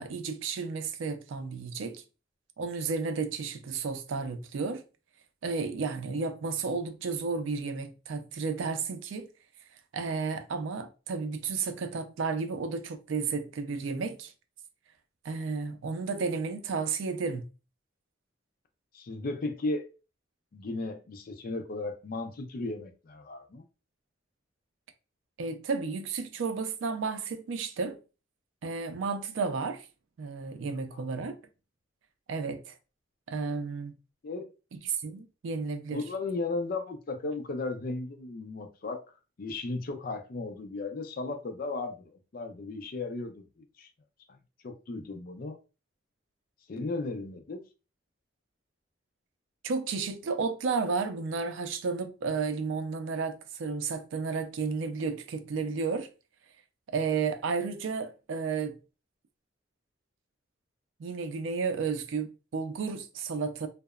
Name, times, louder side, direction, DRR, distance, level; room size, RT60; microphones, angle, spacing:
voice 1, 0.0-2.0 2.6-4.8 5.4-9.3 9.9-14.3 15.2-17.4 25.4-28.0 28.6-29.9 30.2-31.4 32.3-32.8 33.3-33.9 34.7-36.0 49.6-56.1 56.9-58.8 61.0-63.7, right 4 dB, 80° right, 0.4 m, -32 dB
voice 2, 18.9-19.9 20.5-23.6 30.9-31.0 34.2-34.5 35.9-39.1 39.4-43.9 44.3-44.4 44.6-45.6 46.7-47.6, left 3 dB, 50° left, 0.4 m, -35 dB
2.8 x 2.0 x 2.3 m
head